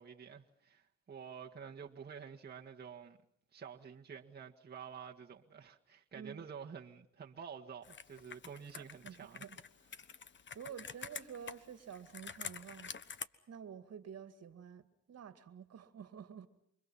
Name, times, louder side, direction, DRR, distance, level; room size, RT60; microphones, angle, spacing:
voice 1, 0.0-3.2 3.5-9.4, right 7 dB, 35° right, 1.8 m, -49 dB
voice 2, 6.1-6.5 8.7-9.6 10.5-12.9 13.5-14.8 15.1-16.5, right 8 dB, 55° right, 2.1 m, -49 dB
Computer keyboard, 7.8-13.3, left 6 dB, 40° left, 1.4 m, -48 dB
29.0 x 25.5 x 5.7 m
cardioid pair, 90°, 30 cm